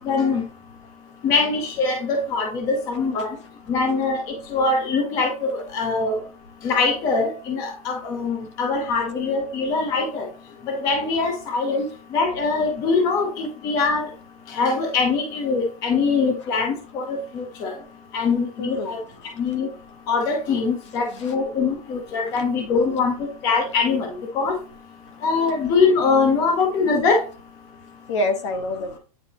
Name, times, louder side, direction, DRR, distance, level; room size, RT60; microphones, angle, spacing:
voice 1, 0.0-0.4 1.2-3.4 3.7-4.2 4.5-6.2 6.6-10.2 10.6-11.9 12.1-14.1 14.5-17.7 18.1-19.0 19.4-19.7 20.1-23.2 23.4-24.5 25.2-27.2, left 4 dB, 15° left, 3 dB, 0.7 m, -22 dB
voice 2, 18.6-19.0 21.1-21.3 22.3-22.4 25.4-25.5 28.1-29.0, left 2 dB, 50° left, 8 dB, 1.1 m, -28 dB
9.0 x 3.9 x 2.9 m, 0.35 s
supercardioid pair, 180°, 19 cm